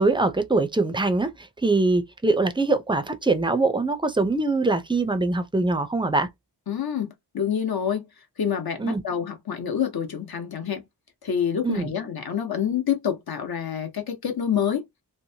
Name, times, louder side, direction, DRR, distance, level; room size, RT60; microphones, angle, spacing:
voice 1, 0.0-6.3 8.8-9.0 11.6-11.9, right 3 dB, 10° right, 0.4 m, -23 dB
voice 2, 6.7-8.0 8.4-10.8 11.2-14.8, left 8 dB, 60° left, 0.9 m, -27 dB
3.0 x 2.1 x 2.7 m
wide cardioid pair, 85°, 41 cm